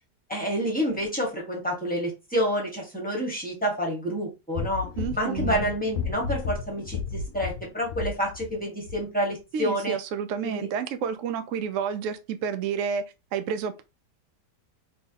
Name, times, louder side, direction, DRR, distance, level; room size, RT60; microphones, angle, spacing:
voice 1, 0.3-4.9 5.2-10.0 10.4-10.7, equal, 5° left, 1.2 m, -28 dB
sound 1, 4.5-8.6 8.8-9.0, left 6 dB, 70° left, 1.0 m, -33 dB
voice 2, 5.0-5.7 9.5-13.0 13.3-13.8, right 7 dB, 70° right, 0.8 m, -30 dB
3.5 x 3.0 x 2.8 m
omnidirectional pair, 1.8 m